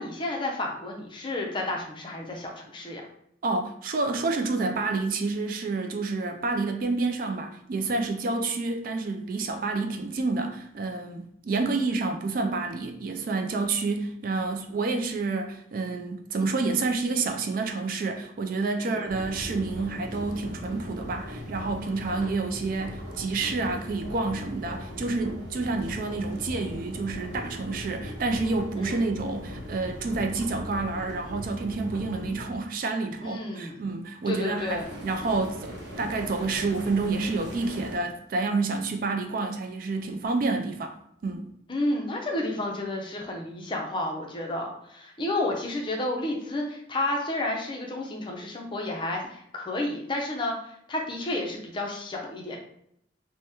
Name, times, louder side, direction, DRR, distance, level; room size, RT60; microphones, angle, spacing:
voice 1, 0.0-3.0 18.8-19.0 28.8-29.1 33.2-33.8 34.3-34.9 41.7-52.6, left 2 dB, 25° left, 1 dB, 0.5 m, -31 dB
voice 2, 3.4-41.0 41.2-41.5, right 3 dB, 50° right, 5 dB, 0.3 m, -29 dB
sound 1, 19.1-32.6 34.5-38.0, equal, 70° right, 0.7 m, -39 dB
2.9 x 2.1 x 3.4 m, 0.72 s
head